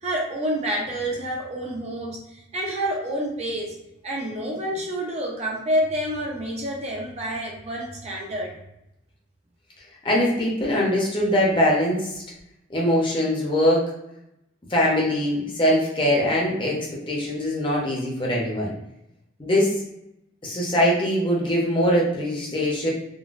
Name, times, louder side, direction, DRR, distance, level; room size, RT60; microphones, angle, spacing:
voice 1, 0.0-3.8 4.0-8.6, equal, 35° right, -1 dB, 0.5 m, -28 dB
voice 2, 10.0-12.1 12.7-13.9 14.7-16.8 17.1-18.7 19.4-19.8 20.4-22.9, equal, 25° left, -4 dB, 0.7 m, -22 dB
3.8 x 2.1 x 2.4 m, 0.84 s
head